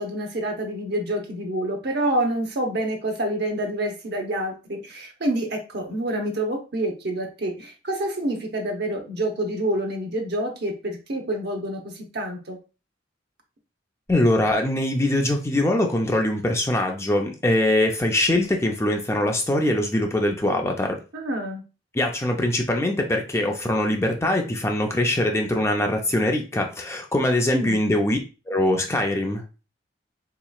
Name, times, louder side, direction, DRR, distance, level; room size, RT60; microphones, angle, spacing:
voice 1, 0.0-12.6 21.1-21.6 27.5-27.8, right 1 dB, 60° right, 3 dB, 0.9 m, -27 dB
voice 2, 14.1-21.0 21.9-28.2 28.5-29.4, left 1 dB, 15° left, 2 dB, 0.4 m, -22 dB
4.1 x 2.9 x 2.3 m, 0.32 s
head